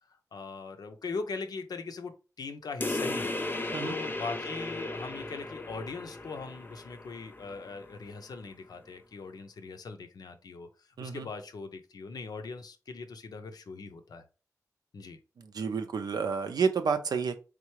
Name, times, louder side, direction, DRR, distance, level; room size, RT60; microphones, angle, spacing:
voice 1, 0.3-3.4 3.8-14.3 14.9-15.2, left 4 dB, 80° left, 7 dB, 0.5 m, -40 dB
sound 1, 2.8-7.9, left 2 dB, 30° left, 0.6 m, -36 dB
voice 2, 15.5-17.4, right 5 dB, 85° right, 8 dB, 0.5 m, -29 dB
3.7 x 3.3 x 3.1 m, 0.33 s
cardioid pair, 45°, 7 cm